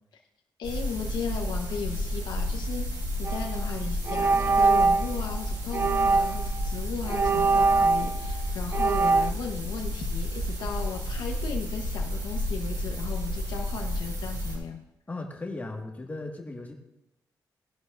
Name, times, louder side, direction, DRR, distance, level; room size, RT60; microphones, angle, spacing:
voice 1, 0.6-14.8, left 6 dB, 85° left, 1 dB, 1.0 m, -36 dB
sound 1, 0.6-14.6, equal, 65° right, 5.2 m, -31 dB
sound 2, 3.2-3.5 4.1-5.1 5.7-6.5 7.1-8.3 8.7-9.3, right 4 dB, 35° right, 0.4 m, -23 dB
voice 2, 8.9-9.2 15.1-16.7, left 2 dB, 20° left, 1 dB, 1.8 m, -37 dB
18.5 x 11.0 x 2.6 m, 0.89 s
cardioid pair, 110°, 7 cm